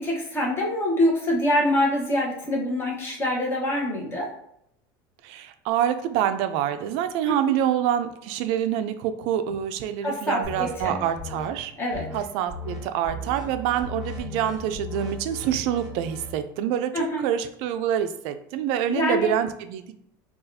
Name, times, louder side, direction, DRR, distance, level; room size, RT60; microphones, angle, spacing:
voice 1, 0.0-4.3 7.3-7.4 10.0-10.9 11.8-12.1 16.9-17.2 18.9-19.3, left 1 dB, 20° left, -2 dB, 1.0 m, -25 dB
voice 2, 5.2-11.7 12.1-20.0, right 10 dB, 65° right, 9 dB, 0.3 m, -26 dB
sound 1, 10.4-11.5 11.9-12.2 12.5-12.8 13.0-16.3, left 1 dB, 5° right, 1.1 m, -36 dB
4.0 x 2.4 x 2.6 m, 0.72 s
supercardioid pair, 135°, 11 cm